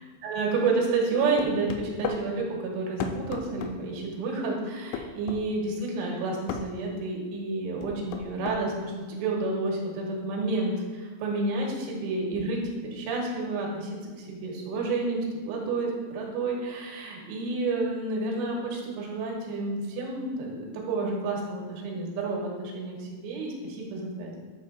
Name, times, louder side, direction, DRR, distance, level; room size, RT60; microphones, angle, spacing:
voice 1, 0.2-24.4, right 3 dB, 85° right, -2 dB, 3.6 m, -30 dB
sound 1, 1.4-2.2 3.0-3.8 4.9-5.4 6.5-6.7 7.8-8.6, left 7 dB, 85° left, 2.8 m, -33 dB
9.3 x 6.1 x 2.2 m, 1.4 s
omnidirectional pair, 5.5 m